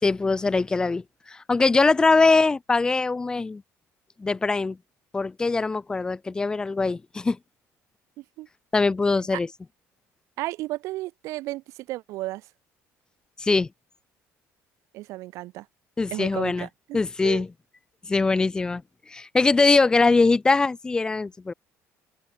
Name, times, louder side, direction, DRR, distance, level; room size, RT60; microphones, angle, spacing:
voice 1, 0.0-3.6 4.2-4.8 5.1-7.4 8.7-9.5 13.4-13.7 16.0-16.7 16.9-17.5 18.1-18.8 19.1-21.5, left 3 dB, 15° left, 3.3 m, -22 dB
voice 2, 8.2-8.5 9.3-9.4 10.4-12.5 14.9-15.7 16.1-17.4, right 18 dB, 70° right, 3.3 m, -34 dB
open air
cardioid pair, 165°, 5 cm